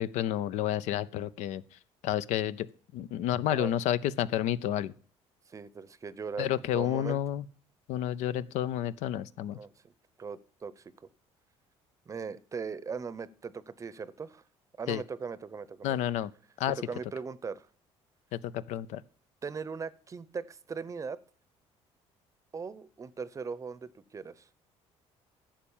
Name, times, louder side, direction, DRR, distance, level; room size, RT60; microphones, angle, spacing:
voice 1, 0.0-1.6 2.0-2.7 2.9-4.9 6.4-7.4 7.9-9.6 14.9-15.0 15.8-16.3 16.6-16.8 18.3-19.0, left 11 dB, 80° left, 16 dB, 0.6 m, -30 dB
voice 2, 5.5-7.2 9.5-9.9 10.2-10.9 12.1-14.4 14.8-16.0 16.8-17.7 19.4-21.2 22.5-24.5, right 5 dB, 25° right, 18 dB, 0.7 m, -39 dB
11.5 x 7.4 x 7.2 m, 0.43 s
cardioid pair, 120°, 12 cm